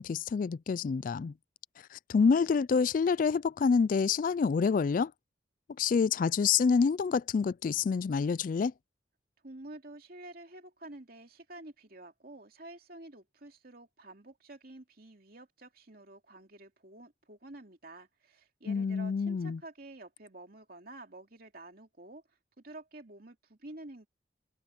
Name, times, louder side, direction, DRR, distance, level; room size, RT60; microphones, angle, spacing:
voice 1, 0.0-1.3 1.9-5.1 5.8-8.7 18.7-19.6, left 5 dB, 45° left, 0.3 m, -27 dB
voice 2, 9.4-22.2 22.6-24.1, right 2 dB, 55° right, 2.7 m, -49 dB
head